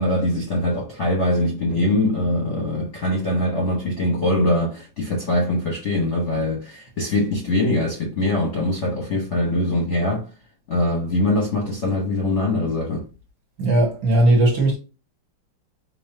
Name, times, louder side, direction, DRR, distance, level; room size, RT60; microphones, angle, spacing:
voice 1, 0.0-10.3 10.7-13.1, left 1 dB, 45° left, 0.9 m, -22 dB
voice 2, 13.6-14.8, right 1 dB, 50° right, 1.3 m, -17 dB
4.3 x 2.9 x 2.7 m
omnidirectional pair, 2.4 m